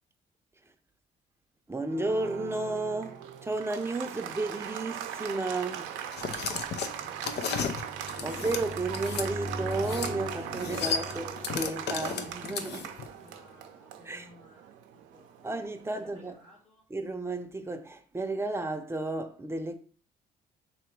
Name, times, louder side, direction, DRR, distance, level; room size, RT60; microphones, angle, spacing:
voice 1, 1.7-3.2 3.4-5.9 7.0-7.1 8.2-12.9 14.0-14.3 15.4-16.3 16.9-19.7, right 2 dB, 15° right, 0.7 m, -33 dB
Applause, 1.8-16.2, right 9 dB, 90° right, 0.5 m, -40 dB
sound 1, 3.1-13.5, right 2 dB, 70° right, 0.9 m, -42 dB
sound 2, 6.1-9.3 9.7-10.2 10.4-13.1, left 6 dB, 65° left, 0.6 m, -34 dB
voice 2, 7.0-7.8 13.1-15.5 16.0-16.8, left 2 dB, 40° left, 1.2 m, -58 dB
3.1 x 2.9 x 4.6 m
supercardioid pair, 65°, 19 cm